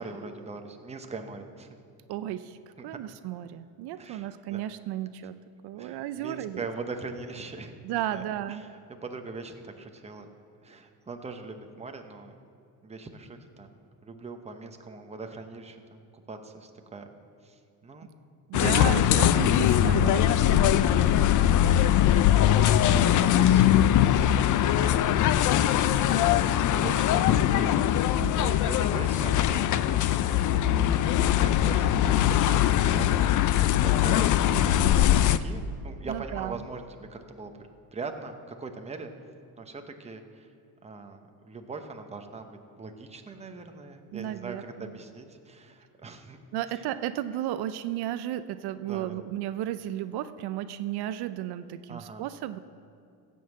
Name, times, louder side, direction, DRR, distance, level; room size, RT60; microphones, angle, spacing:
voice 1, 0.0-1.8 2.8-3.0 4.0-4.6 5.8-7.7 8.1-10.3 10.6-12.3 12.8-17.1 17.4-18.1 18.6-18.7 19.1-19.3 21.4-25.1 25.9-39.1 39.6-40.5 40.8-46.4 46.7-46.8 48.8-49.2 51.9-52.3, right 3 dB, 15° right, 5 dB, 0.9 m, -42 dB
voice 2, 2.1-2.6 2.8-5.4 5.6-6.7 7.8-8.6 18.5-21.7 28.2-28.6 36.1-36.6 44.1-45.0 46.5-52.6, right 12 dB, 70° right, 12 dB, 0.6 m, -34 dB
sound 1, 18.5-35.4, left 11 dB, 50° left, 0.5 m, -22 dB
16.0 x 5.5 x 7.7 m, 2.4 s
cardioid pair, 135°, 40 cm